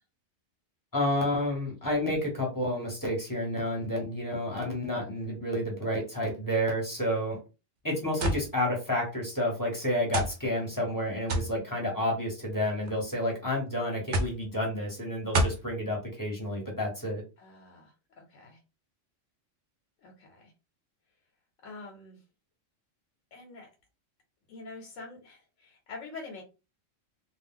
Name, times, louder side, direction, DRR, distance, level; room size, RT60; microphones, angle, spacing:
voice 1, 0.9-7.3 7.8-17.2, left 1 dB, 20° left, -2 dB, 0.8 m, -30 dB
sound 1, 8.2-8.5 9.3-9.4 10.1-10.4 11.3-11.5 12.5-13.0 14.1-14.4 15.3-15.7, right 1 dB, 55° right, 0.5 m, -27 dB
voice 2, 17.4-18.6 20.0-20.5 21.6-22.2 23.3-23.7 24.5-26.4, left 3 dB, 85° left, 1 dB, 1.0 m, -46 dB
2.3 x 2.1 x 3.5 m, 0.30 s
omnidirectional pair, 1.3 m